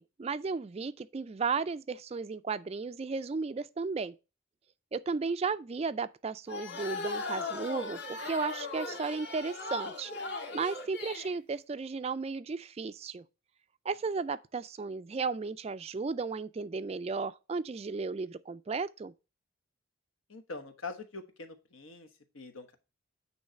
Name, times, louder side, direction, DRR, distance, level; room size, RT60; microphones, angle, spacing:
voice 1, 0.0-4.1 4.9-10.1 10.5-13.2 13.9-19.1, right 4 dB, 30° right, 0.3 m, -34 dB
sound 1, 6.5-11.3, left 3 dB, 55° left, 1.7 m, -38 dB
voice 2, 20.3-22.1 22.3-22.8, left 3 dB, 80° left, 1.2 m, -43 dB
9.5 x 3.2 x 6.4 m
head